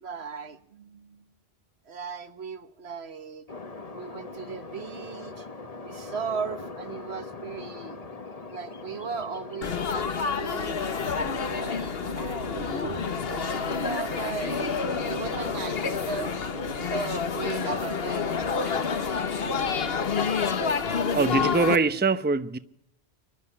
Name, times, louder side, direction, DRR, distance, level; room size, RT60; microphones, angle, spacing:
voice 1, 0.0-1.2 1.9-3.4 3.9-5.5 5.8-8.0 8.5-10.7 11.4-16.3 16.9-18.9, right 6 dB, 75° right, 1.5 m, -37 dB
sound 1, 3.5-20.5, left 3 dB, 35° left, 1.3 m, -41 dB
Laughter / Chatter / Crowd, 9.6-21.8, left 5 dB, 65° left, 1.4 m, -29 dB
voice 2, 21.1-22.6, right 4 dB, 10° right, 0.7 m, -23 dB
23.5 x 12.0 x 9.9 m
omnidirectional pair, 1.1 m